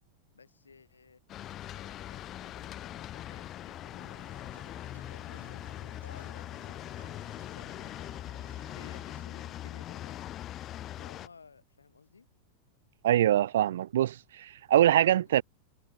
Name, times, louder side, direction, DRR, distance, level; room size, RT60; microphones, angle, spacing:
voice 1, 0.3-1.2 1.7-4.5 5.1-10.2 11.0-12.3 15.2-15.3, left 5 dB, 75° left, 4.4 m, -57 dB
sound 1, 1.3-11.3, left 12 dB, 30° left, 0.3 m, -41 dB
sound 2, 4.0-9.2, right 4 dB, 75° right, 5.0 m, -57 dB
voice 2, 13.0-15.4, right 12 dB, 60° right, 0.3 m, -24 dB
figure-of-eight pair, 90°, 0 cm